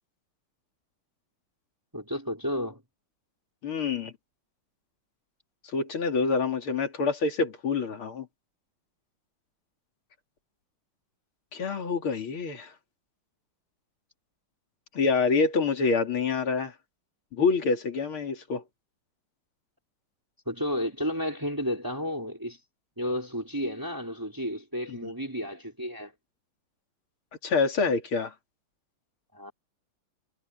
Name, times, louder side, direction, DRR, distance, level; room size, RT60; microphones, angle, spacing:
voice 1, 1.9-2.8 20.5-22.6 23.0-26.1 29.3-29.5, equal, 10° right, 4.4 m, -32 dB
voice 2, 3.6-4.1 5.7-8.3 11.5-12.7 14.9-16.7 17.3-18.6 24.9-25.0 27.4-28.3, left 4 dB, 80° left, 3.5 m, -26 dB
omnidirectional pair, 2.3 m